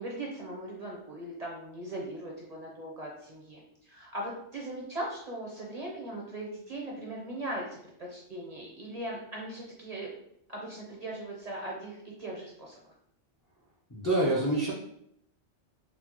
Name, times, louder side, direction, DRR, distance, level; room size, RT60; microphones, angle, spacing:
voice 1, 0.0-10.1 10.5-12.9, right 1 dB, 45° right, -2 dB, 0.6 m, -39 dB
voice 2, 13.9-14.7, right 1 dB, 30° left, -4 dB, 0.3 m, -26 dB
4.1 x 2.0 x 3.0 m, 0.72 s
omnidirectional pair, 1.2 m